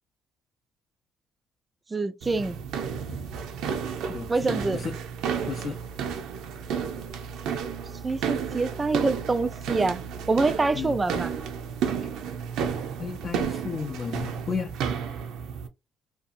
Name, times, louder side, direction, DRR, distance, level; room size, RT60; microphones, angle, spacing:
voice 1, 1.9-2.6 4.3-4.8 8.0-10.0 10.3-11.3, right 3 dB, 25° right, 0.3 m, -25 dB
sound 1, 2.2-15.7, right 7 dB, 85° right, 0.5 m, -32 dB
voice 2, 4.1-4.9 5.5-5.8 10.7-11.0 12.0-12.1 13.0-14.7, left 6 dB, 45° left, 0.4 m, -33 dB
2.6 x 2.3 x 2.5 m
cardioid pair, 85°, 0 cm